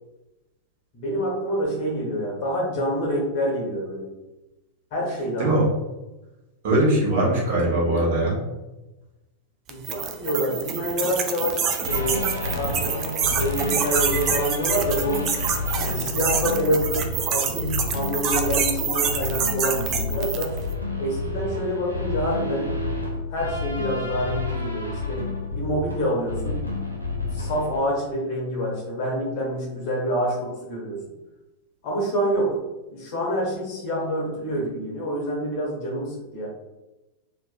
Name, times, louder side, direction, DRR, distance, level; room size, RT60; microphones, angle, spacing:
voice 1, 0.9-4.1 4.9-5.6 9.7-12.2 12.5-12.9 13.3-15.2 15.8-20.5 21.0-22.7 23.3-26.6 27.3-31.0 31.8-32.5 32.9-36.5, equal, 45° left, -3 dB, 1.3 m, -27 dB
voice 2, 5.4-5.7 6.6-8.4, right 1 dB, 50° right, -3 dB, 1.2 m, -21 dB
sound 1, 9.7-20.6, right 7 dB, 35° right, 0.4 m, -27 dB
sound 2, 11.8-27.8, left 3 dB, 90° right, 0.5 m, -30 dB
3.2 x 3.0 x 2.4 m, 1.0 s
figure-of-eight pair, 90°, 0 cm